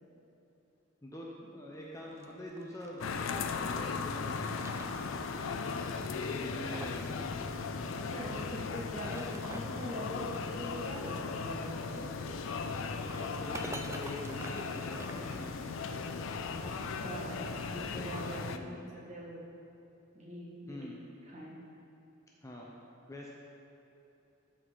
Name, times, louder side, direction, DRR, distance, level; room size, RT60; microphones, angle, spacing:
voice 1, 1.0-5.1 6.1-7.3 13.2-15.7 18.5-18.8 20.7-21.0 22.4-22.7 23.1-23.3, left 1 dB, 15° left, -3 dB, 0.7 m, -45 dB
sound 1, 1.9-3.8 4.2-5.5 5.7-5.8 6.3-7.2 7.4-7.5 8.8-9.8 11.8-15.8, right 2 dB, 15° right, 0.4 m, -48 dB
sound 2, 3.0-18.6, left 4 dB, 80° left, 0.5 m, -37 dB
voice 2, 7.9-12.1 16.6-19.4 20.1-20.8 21.3-21.6, equal, 35° right, -6 dB, 1.8 m, -43 dB
14.0 x 4.8 x 4.1 m, 3.0 s
head